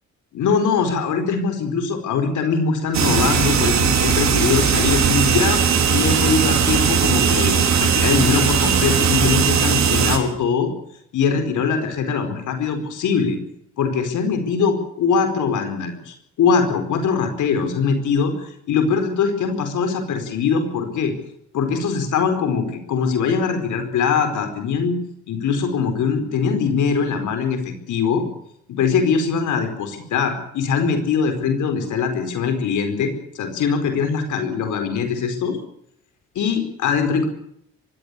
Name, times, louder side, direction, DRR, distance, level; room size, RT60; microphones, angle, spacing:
voice 1, 0.3-5.6 5.9-10.7 11.1-13.4 13.8-21.1 21.5-25.0 25.3-28.2 28.7-35.6 36.3-37.3, left 5 dB, 75° left, 7 dB, 4.6 m, -22 dB
sound 1, 2.9-10.2, right 7 dB, 65° right, 4.9 m, -18 dB
23.0 x 16.5 x 8.4 m, 0.74 s
cardioid pair, 90°, 30 cm